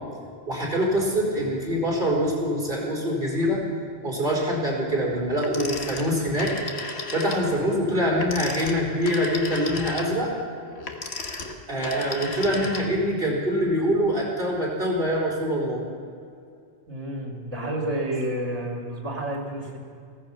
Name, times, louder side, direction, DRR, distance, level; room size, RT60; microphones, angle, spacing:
voice 1, 0.5-3.6 4.0-6.5 7.1-10.3 11.7-15.8, equal, 45° right, -4 dB, 4.4 m, -24 dB
Telephone, 5.4-7.5 8.1-13.2, left 2 dB, 60° left, 1.5 m, -34 dB
voice 2, 16.9-19.8, right 1 dB, 65° right, 0 dB, 3.1 m, -30 dB
16.0 x 15.0 x 5.8 m, 2.3 s
omnidirectional pair, 1.3 m